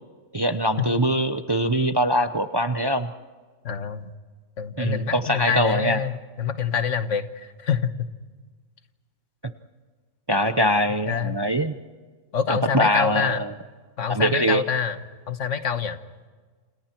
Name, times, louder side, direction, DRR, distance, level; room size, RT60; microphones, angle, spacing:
voice 1, 0.3-3.1 4.8-6.0 10.3-11.8 12.5-13.5 14.1-14.6, equal, 25° right, 9 dB, 0.6 m, -23 dB
voice 2, 3.6-4.1 4.6-8.1 11.1-11.4 12.3-13.4 14.0-15.0 15.3-16.0, left 7 dB, 70° left, 10 dB, 1.5 m, -26 dB
29.0 x 28.0 x 4.5 m, 1.4 s
omnidirectional pair, 1.3 m